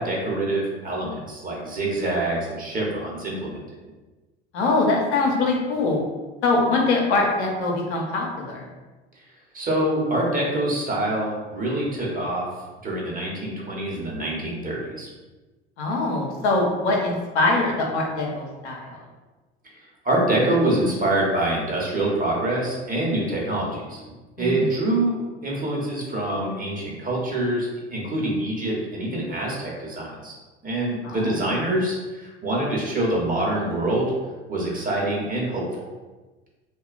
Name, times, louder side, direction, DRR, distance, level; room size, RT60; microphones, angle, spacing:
voice 1, 0.0-3.6 9.5-12.5 12.8-15.1 19.7-24.0 24.4-30.3 30.6-34.1 34.5-35.6, right 1 dB, 25° right, -3 dB, 0.9 m, -25 dB
voice 2, 4.5-6.0 6.4-8.6 15.8-19.0 24.4-24.7 31.0-31.4, left 3 dB, 80° left, 0 dB, 0.6 m, -23 dB
2.7 x 2.2 x 2.4 m, 1.2 s
hypercardioid pair, 70°, 33 cm